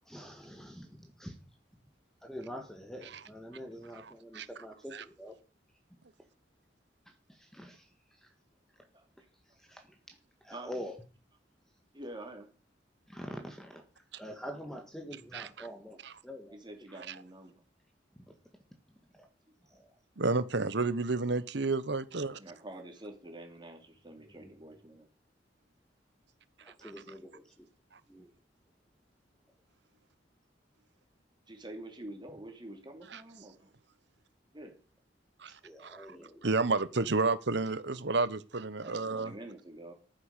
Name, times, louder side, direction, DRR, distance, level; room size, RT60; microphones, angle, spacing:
voice 1, 0.1-1.4 2.2-5.3 7.3-7.9 8.2-8.3 9.6-9.8 10.4-10.9 13.1-13.8 14.2-16.6 19.1-19.3 19.7-19.9 24.2-24.5 26.6-27.5 28.1-28.3 35.6-36.4, equal, 5° left, 1.7 m, -45 dB
voice 2, 3.9-4.5 4.9-5.0 15.3-15.7 16.0-16.1 17.0-17.2 20.2-22.4 26.8-26.9 33.1-33.2 35.4-36.2 36.4-39.3, right 3 dB, 70° right, 1.0 m, -31 dB
voice 3, 11.9-12.5 16.5-17.6 22.4-25.1 31.5-33.7 34.5-34.7 38.8-39.9, right 1 dB, 25° right, 3.1 m, -47 dB
12.5 x 9.7 x 6.6 m
head